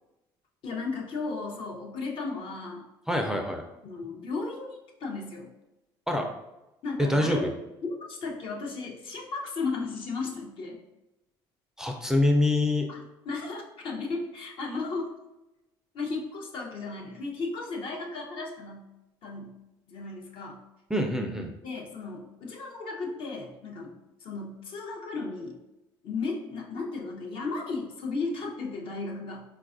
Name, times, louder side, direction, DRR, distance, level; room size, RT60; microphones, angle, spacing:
voice 1, 0.6-2.8 3.8-5.5 6.8-7.5 7.8-10.8 12.9-15.1 15.9-18.9 19.2-19.5 19.9-20.6 21.6-23.9 24.2-25.6 26.0-29.4, left 3 dB, 60° left, 0 dB, 0.7 m, -35 dB
voice 2, 3.1-3.6 6.1-6.3 7.0-7.5 11.8-12.9 20.9-21.5, left 1 dB, 5° right, 3 dB, 0.4 m, -25 dB
4.0 x 2.3 x 2.5 m, 0.96 s
supercardioid pair, 85°, 10 cm